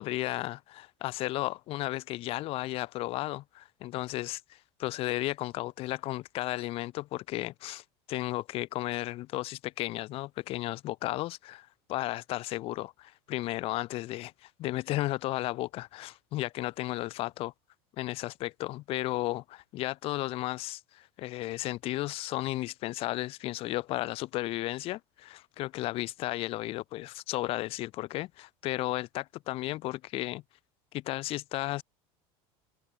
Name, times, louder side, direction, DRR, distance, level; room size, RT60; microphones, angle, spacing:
voice 1, 0.0-17.5 18.0-30.4 30.9-31.8, left 17 dB, 45° left, 0.5 m, -34 dB
supercardioid pair, 120°, 13 cm